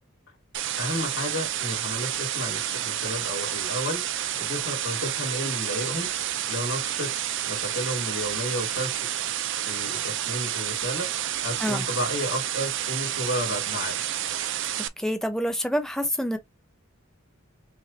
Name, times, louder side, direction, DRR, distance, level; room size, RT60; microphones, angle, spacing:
sound 1, 0.5-14.9, right 11 dB, 60° right, 0.5 m, -30 dB
voice 1, 0.8-4.0 4.4-6.1 6.5-7.1 7.5-9.1 9.7-11.1 11.4-14.0, left 1 dB, 65° left, 2.8 m, -32 dB
voice 2, 15.0-16.4, equal, ahead, 0.8 m, -27 dB
5.9 x 2.5 x 2.7 m
head